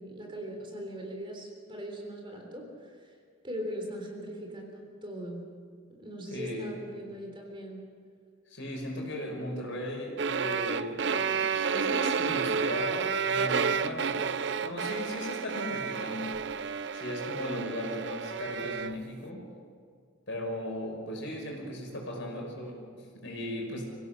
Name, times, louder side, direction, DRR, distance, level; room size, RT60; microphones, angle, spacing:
voice 1, 0.0-3.1 3.4-5.4 5.9-7.8 17.5-17.7, equal, 25° right, 1 dB, 3.6 m, -40 dB
voice 2, 6.3-6.7 8.5-11.5 11.7-14.3 14.6-16.4 16.9-19.5 20.3-23.8, left 1 dB, 65° left, 0 dB, 5.5 m, -37 dB
sound 1, 10.2-19.0, right 6 dB, 60° right, 0.6 m, -31 dB
26.5 x 16.5 x 6.6 m, 2.1 s
head